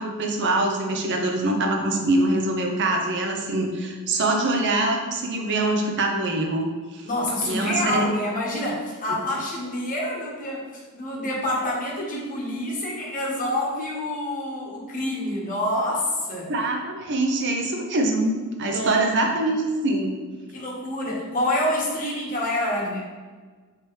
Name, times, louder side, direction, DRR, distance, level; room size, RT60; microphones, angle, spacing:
voice 1, 0.0-6.7 6.9-7.1 7.4-8.1 16.5-20.2, right 2 dB, 55° right, 2 dB, 0.5 m, -24 dB
voice 2, 7.0-16.5 18.7-19.1 20.5-23.0, left 1 dB, 35° left, -4 dB, 1.1 m, -27 dB
4.4 x 3.4 x 3.1 m, 1.4 s
head